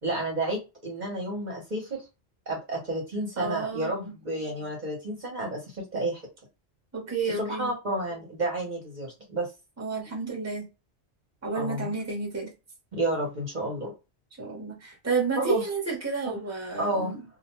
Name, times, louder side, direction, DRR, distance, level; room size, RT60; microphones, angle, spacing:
voice 1, 0.0-2.0 2.5-6.2 7.4-9.5 11.5-11.9 12.9-13.9 15.4-15.7 16.8-17.1, right 1 dB, 45° right, 0.9 m, -31 dB
voice 2, 3.4-4.1 6.9-7.7 9.8-10.6 11.4-12.5 14.4-17.2, right 4 dB, 15° right, 0.9 m, -31 dB
2.5 x 2.1 x 2.9 m
omnidirectional pair, 1.1 m